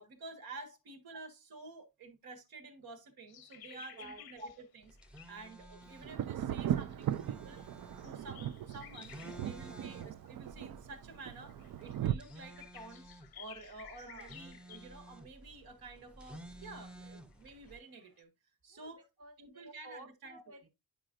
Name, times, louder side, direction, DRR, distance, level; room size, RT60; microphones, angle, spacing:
voice 1, 0.0-5.0 5.3-7.6 7.9-9.2 9.4-13.0 13.3-18.3 18.6-19.0 19.4-20.4, right 3 dB, 80° right, 1.4 m, -50 dB
sound 1, 3.3-9.7 10.3-10.6 10.9-15.0 15.3-15.4 15.7-16.1 16.5-16.7 17.2-18.2, left 11 dB, 85° left, 0.7 m, -56 dB
voice 2, 3.7-4.2 9.6-9.9 14.0-14.4 18.7-20.7, right 2 dB, 40° right, 1.2 m, -53 dB
sound 2, 4.8-17.8, right 1 dB, 5° right, 0.6 m, -54 dB
Thunder, 6.0-12.1, right 11 dB, 65° right, 0.5 m, -38 dB
9.0 x 4.9 x 2.5 m
cardioid pair, 120°, 36 cm